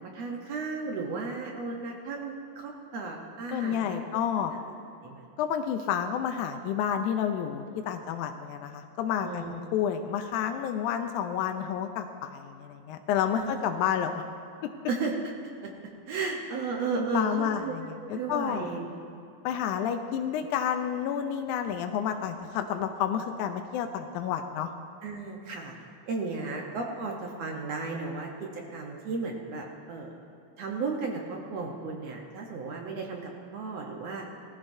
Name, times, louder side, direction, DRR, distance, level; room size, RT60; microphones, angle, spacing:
voice 1, 0.0-4.0 5.0-5.2 9.2-9.5 13.3-13.6 14.9-15.1 15.6-15.7 16.1-17.7 18.0-18.9 25.0-25.7 26.1-30.1 30.6-34.2, right 4 dB, 65° right, 0 dB, 1.6 m, -34 dB
voice 2, 3.5-4.5 5.4-14.2 16.9-18.7 19.4-24.7, left 8 dB, 85° left, 6 dB, 1.7 m, -30 dB
18.5 x 14.5 x 2.7 m, 2.6 s
omnidirectional pair, 4.1 m